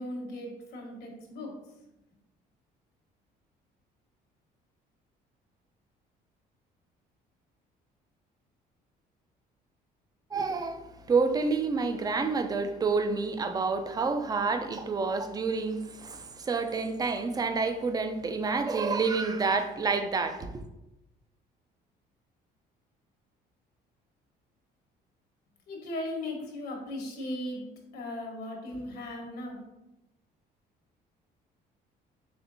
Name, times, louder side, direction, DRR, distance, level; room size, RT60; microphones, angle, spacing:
voice 1, 0.0-1.5 25.7-27.6 27.9-29.6, left 1 dB, 70° left, 1.1 m, -37 dB
voice 2, 10.3-20.6, right 4 dB, 25° right, 0.4 m, -28 dB
4.3 x 3.3 x 2.6 m
cardioid pair, 110°, 17 cm